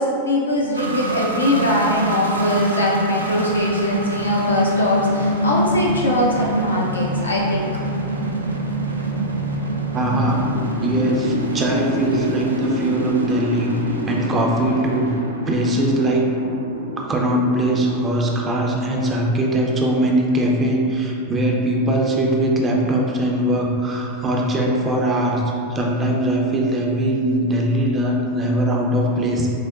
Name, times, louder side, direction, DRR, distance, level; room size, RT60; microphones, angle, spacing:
voice 1, 0.0-7.7, left 1 dB, 80° left, -4 dB, 0.6 m, -21 dB
sound 1, 0.7-19.2, right 1 dB, 80° right, 0.3 m, -25 dB
voice 2, 9.9-10.4 10.8-13.8 14.1-15.1 15.5-16.3 17.0-25.4 25.7-29.5, right 1 dB, 20° right, -1 dB, 0.5 m, -21 dB
6.0 x 2.1 x 2.5 m, 2.5 s
figure-of-eight pair, 90°, 0 cm